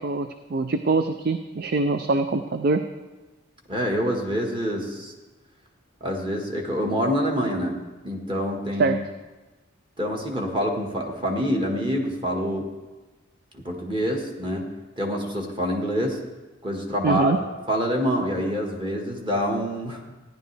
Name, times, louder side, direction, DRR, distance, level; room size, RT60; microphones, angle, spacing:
voice 1, 0.0-2.8 8.8-9.0 17.0-17.4, right 3 dB, 50° right, 8 dB, 0.4 m, -23 dB
voice 2, 3.7-5.1 6.0-7.8 8.0-9.0 10.0-12.7 13.5-14.7 15.0-16.2 16.6-17.3 17.7-20.0, equal, 25° right, 0 dB, 1.5 m, -26 dB
14.5 x 10.5 x 3.3 m, 1.2 s
head